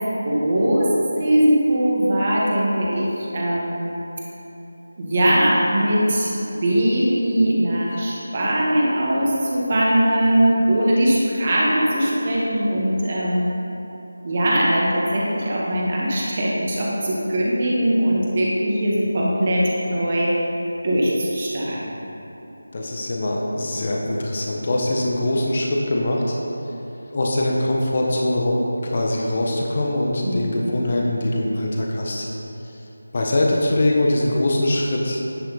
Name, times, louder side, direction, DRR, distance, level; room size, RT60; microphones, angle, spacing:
voice 1, 0.2-0.9 1.2-4.0 5.0-13.5 14.2-20.5 20.8-22.0 30.2-30.7, right 1 dB, 35° right, -5 dB, 1.7 m, -20 dB
voice 2, 22.7-26.4 27.1-32.3 32.6-32.7 33.1-35.2, left 1 dB, 40° left, -1 dB, 1.1 m, -22 dB
10.5 x 6.4 x 4.1 m, 3.0 s
figure-of-eight pair, 165°, 0 cm